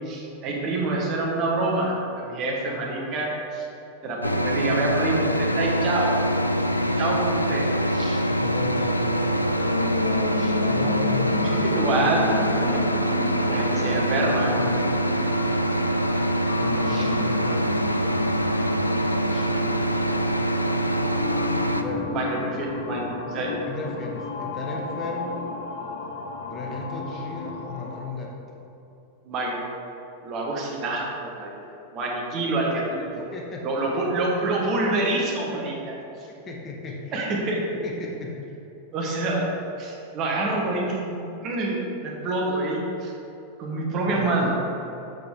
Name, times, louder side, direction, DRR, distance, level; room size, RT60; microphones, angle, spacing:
voice 1, 0.0-3.7 4.0-6.2 7.0-8.2 10.4-10.5 11.4-12.8 13.4-14.5 16.9-17.1 19.3-19.5 22.1-23.6 29.2-29.6 30.2-31.5 31.9-33.2 33.6-35.9 37.1-37.6 38.9-41.2 41.4-43.1 43.6-44.5, right 2 dB, 35° right, -2 dB, 1.4 m, -27 dB
sound 1, 4.2-21.8, right 1 dB, 85° left, 0.3 m, -24 dB
voice 2, 6.6-7.5 8.3-9.3 10.7-12.7 13.8-14.8 16.6-17.7 21.8-22.1 23.7-25.5 26.5-28.4 33.1-33.9 36.0-37.2 37.8-38.3 40.5-40.6 44.0-44.6, left 3 dB, 25° left, -1 dB, 1.0 m, -35 dB
sound 2, 9.3-28.0, left 5 dB, 55° left, 0.7 m, -33 dB
6.6 x 6.6 x 3.7 m, 3.0 s
figure-of-eight pair, 90°, 0 cm